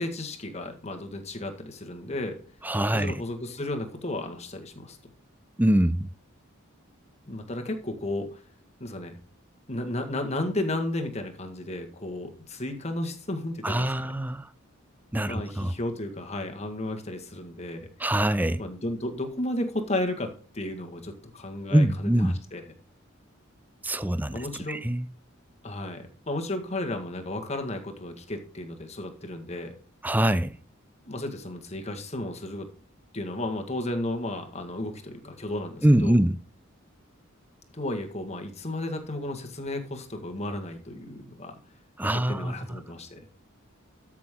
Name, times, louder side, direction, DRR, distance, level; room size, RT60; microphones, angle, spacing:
voice 1, 0.0-2.4 2.9-5.0 7.3-8.4 8.8-9.2 9.7-14.2 15.3-17.9 18.6-22.6 24.3-24.8 25.6-29.8 31.0-32.7 33.1-36.2 37.7-41.6 42.1-43.2, left 1 dB, 30° left, 1.7 m, -33 dB
voice 2, 2.6-3.1 5.6-6.1 13.6-14.5 15.1-15.7 18.0-18.6 21.7-22.3 23.8-24.4 24.7-25.0 30.0-30.5 35.8-36.4 42.0-42.5, right 1 dB, 10° right, 0.5 m, -23 dB
13.5 x 6.2 x 3.7 m
head